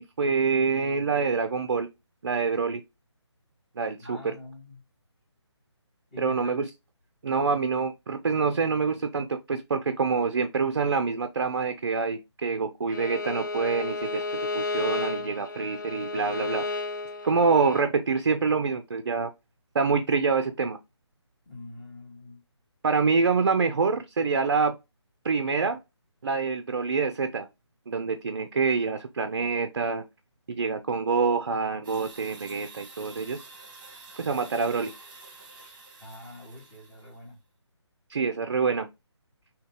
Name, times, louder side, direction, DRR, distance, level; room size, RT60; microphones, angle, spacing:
voice 1, 0.0-1.9 2.2-2.8 3.8-4.3 6.2-6.7 7.2-16.6 17.2-19.3 19.7-20.8 22.8-24.8 25.2-25.8 26.2-27.5 27.9-30.0 30.6-33.4 34.2-34.9 38.1-38.9, right 5 dB, 50° right, 0.5 m, -26 dB
voice 2, 3.9-4.8 6.1-6.5 21.5-22.4 36.0-37.4, left 2 dB, 20° left, 1.9 m, -45 dB
Bowed string instrument, 12.9-17.9, left 3 dB, 45° left, 0.6 m, -32 dB
sound 1, 31.8-37.2, right 3 dB, 20° right, 1.3 m, -48 dB
3.8 x 2.8 x 3.6 m
figure-of-eight pair, 150°, 15 cm